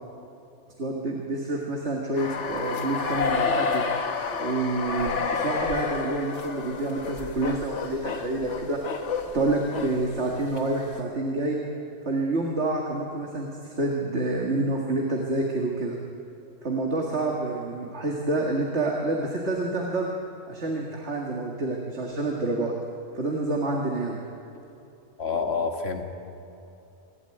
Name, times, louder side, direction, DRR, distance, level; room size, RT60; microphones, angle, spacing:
voice 1, 0.8-3.8 4.4-8.8 9.3-11.6 12.1-16.0 16.6-20.1 20.5-22.7 23.1-24.2, right 2 dB, 75° right, -1 dB, 2.3 m, -28 dB
sound 1, 2.2-10.6, left 5 dB, 90° left, 1.5 m, -30 dB
voice 2, 25.2-26.0, left 5 dB, 65° left, 4 dB, 2.0 m, -27 dB
27.0 x 12.5 x 9.2 m, 2.9 s
omnidirectional pair, 1.2 m